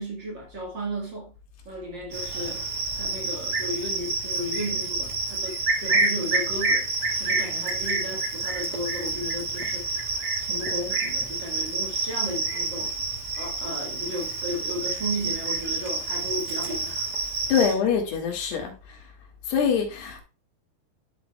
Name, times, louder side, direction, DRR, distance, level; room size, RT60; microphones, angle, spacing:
voice 1, 0.0-1.3 1.6-2.6 2.9-6.9 7.2-10.0 10.4-12.9 13.4-17.7, equal, 60° right, 1.2 m, -34 dB
Cricket, 2.1-17.7, right 3 dB, 40° right, 1.7 m, -28 dB
voice 2, 17.5-19.0 19.5-20.2, left 7 dB, 80° left, 3.8 m, -24 dB
11.5 x 6.3 x 2.3 m
omnidirectional pair, 4.7 m